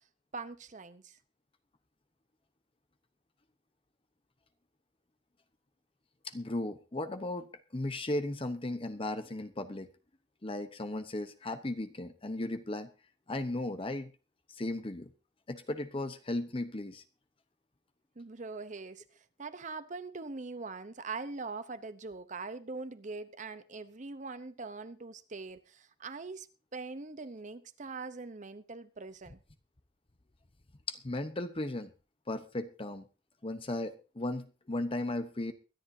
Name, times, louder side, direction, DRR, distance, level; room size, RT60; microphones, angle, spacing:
voice 1, 0.3-1.2 18.2-26.5 26.7-29.4, right 3 dB, 45° right, 0.8 m, -42 dB
voice 2, 6.2-9.9 10.4-12.9 13.3-14.1 14.5-15.1 15.5-17.0 30.9-31.9 32.3-33.1 33.4-35.5, left 2 dB, 30° left, 0.9 m, -36 dB
23.0 x 11.0 x 2.7 m
head